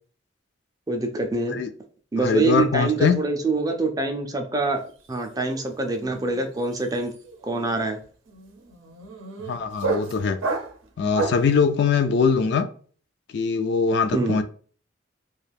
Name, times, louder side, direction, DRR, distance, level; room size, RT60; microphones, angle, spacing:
voice 1, 0.9-1.6 2.1-4.8 5.1-7.1 7.4-8.0 14.1-14.4, right 3 dB, 20° right, 4 dB, 0.4 m, -25 dB
voice 2, 2.2-3.2 9.5-10.4 11.0-12.7 13.3-14.4, left 5 dB, 55° left, 9 dB, 0.3 m, -22 dB
sound 1, 4.8-5.1 5.3-11.6, right 3 dB, 90° right, 0.6 m, -32 dB
2.4 x 2.3 x 3.3 m, 0.43 s
head